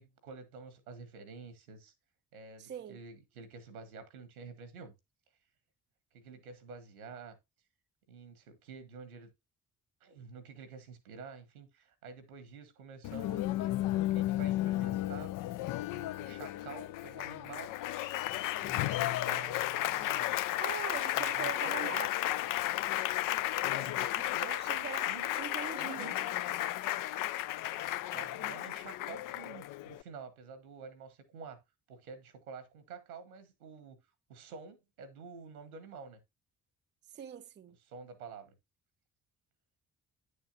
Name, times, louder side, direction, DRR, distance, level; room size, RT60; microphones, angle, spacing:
voice 1, 0.0-1.9 2.3-4.9 6.1-7.4 8.1-9.3 10.0-15.3 15.9-17.7 18.6-20.4 21.1-22.1 23.7-25.5 25.8-26.2 28.1-31.6 31.9-34.0 34.3-36.2 37.9-38.5, right 5 dB, 85° right, 1.3 m, -49 dB
voice 2, 2.6-3.0 20.6-22.4 24.4-25.1 25.4-26.5 37.1-37.8, right 9 dB, 25° right, 0.5 m, -43 dB
Applause, 13.0-30.0, left 15 dB, 50° left, 0.5 m, -33 dB
9.5 x 6.5 x 2.6 m
figure-of-eight pair, 40°, 42 cm